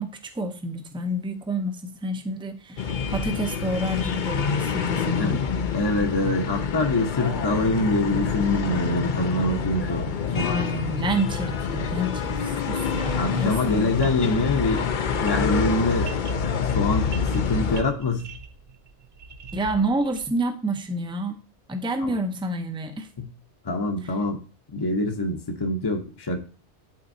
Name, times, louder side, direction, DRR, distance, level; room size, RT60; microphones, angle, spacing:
voice 1, 0.0-5.4 10.3-13.7 19.5-21.4 21.7-23.1 24.0-24.1, right 1 dB, 5° right, 6 dB, 0.5 m, -29 dB
sound 1, 2.8-17.8, left 6 dB, 50° left, 0.7 m, -27 dB
voice 2, 5.7-10.0 10.4-10.5 13.2-14.9 15.2-16.1 16.8-18.3 22.0-22.1 23.2-23.3 23.6-24.4 24.7-26.4, left 2 dB, 25° left, 2 dB, 0.8 m, -25 dB
sound 2, 14.0-20.4, right 3 dB, 60° right, 0.8 m, -42 dB
11.5 x 4.0 x 2.7 m, 0.37 s
omnidirectional pair, 1.2 m